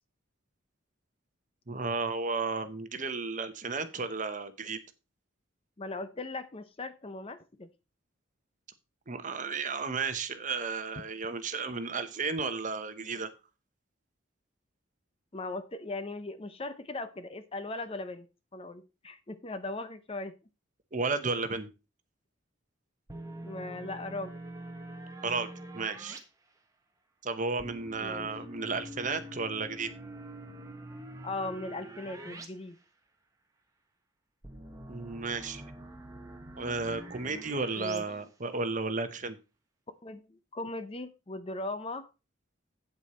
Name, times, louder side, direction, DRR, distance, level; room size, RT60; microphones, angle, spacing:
voice 1, 1.7-4.8 9.1-13.3 20.9-21.7 25.2-25.5 25.7-26.2 27.2-29.9 34.9-35.6 36.6-39.4, right 4 dB, 40° right, 10 dB, 1.0 m, -33 dB
voice 2, 5.8-7.7 11.3-11.4 15.3-18.3 18.5-20.3 23.4-24.3 28.0-28.3 31.2-32.8 37.8-38.2 40.0-42.1, left 2 dB, 30° left, 12 dB, 0.6 m, -38 dB
sound 1, 23.1-26.2 27.6-32.5 32.8-32.9 34.4-38.0, right 1 dB, 15° right, 1.3 m, -45 dB
8.4 x 8.0 x 4.3 m, 0.30 s
head